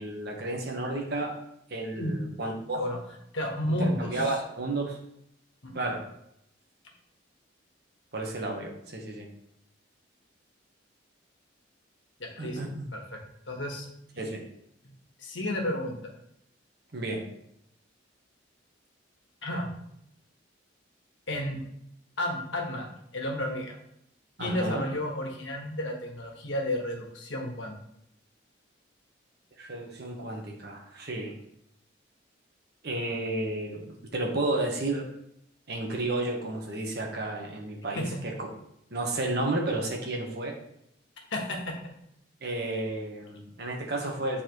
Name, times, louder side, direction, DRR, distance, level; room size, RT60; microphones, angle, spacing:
voice 1, 0.0-1.4 1.7-2.8 3.7-5.0 5.7-6.0 8.1-9.3 12.4-12.9 14.2-14.4 16.9-17.3 24.4-24.8 29.6-31.4 32.8-33.8 34.1-35.1 35.7-38.5 38.9-40.6 42.4-44.4, right 2 dB, 55° right, 1 dB, 1.3 m, -32 dB
voice 2, 3.3-4.4 5.6-5.9 12.2-12.6 12.9-13.2 13.5-13.9 14.1-14.4 15.2-16.1 19.4-19.7 21.3-21.6 22.2-23.8 24.4-27.8 38.0-38.2 41.3-41.9, left 1 dB, 75° left, 1 dB, 1.4 m, -32 dB
9.2 x 4.1 x 3.1 m, 0.76 s
head